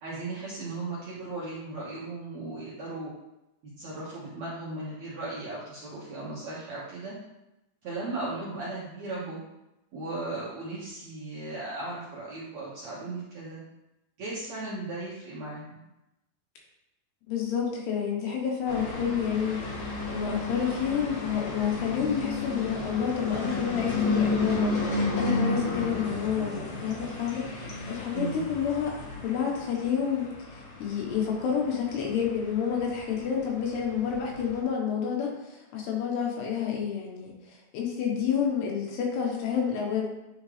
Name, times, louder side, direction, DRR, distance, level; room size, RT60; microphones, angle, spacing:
voice 1, 0.0-3.1 3.8-7.1 7.8-9.4 9.9-13.6 14.2-15.8 28.1-28.5, right 2 dB, 70° right, -7 dB, 1.7 m, -36 dB
voice 2, 17.3-19.6 20.1-28.9 29.2-40.1, left 7 dB, 80° left, -1 dB, 3.3 m, -29 dB
sound 1, 18.7-34.6, left 3 dB, 60° left, 2.0 m, -33 dB
9.6 x 3.7 x 3.3 m, 0.94 s
omnidirectional pair, 4.7 m